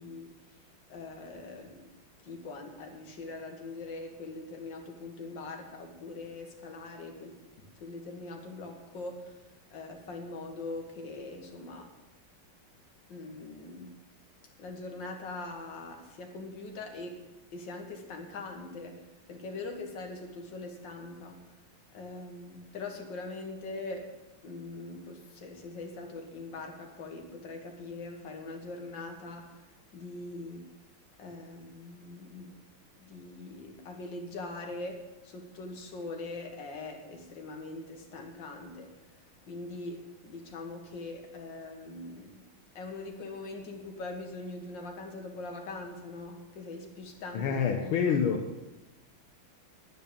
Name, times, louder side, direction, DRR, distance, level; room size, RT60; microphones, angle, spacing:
voice 1, 0.0-1.9 2.2-11.9 13.1-14.0 14.6-21.5 21.9-30.7 31.2-32.6 33.0-39.1 39.5-42.4 42.8-48.1, left 2 dB, 60° left, 2 dB, 2.3 m, -42 dB
voice 2, 47.3-48.4, left 7 dB, 80° left, 2 dB, 1.9 m, -27 dB
10.5 x 9.0 x 6.9 m, 1.0 s
omnidirectional pair, 2.3 m